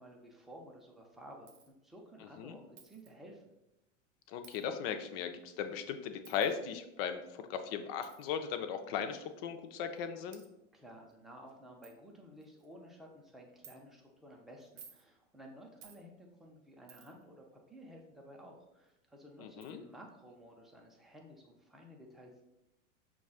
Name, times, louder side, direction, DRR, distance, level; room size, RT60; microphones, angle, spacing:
voice 1, 0.0-3.4 10.7-22.4, equal, ahead, -1 dB, 0.5 m, -54 dB
Coin (dropping), 1.5-1.7 2.8-3.1 4.4-4.7 6.2-6.5 8.0-8.2 9.2-9.3 10.0-10.1 10.3-10.5 11.1-11.2 11.5-11.6 11.8-12.0 12.4-12.7 13.6-13.8 14.6-15.1 15.8-16.0 16.9-17.2 18.9-19.0 19.6-19.7, right 7 dB, 70° right, 0.7 m, -56 dB
voice 2, 4.3-10.4 19.4-19.8, left 7 dB, 50° left, 8 dB, 0.5 m, -37 dB
6.0 x 2.3 x 2.3 m, 0.89 s
hypercardioid pair, 100°, 39 cm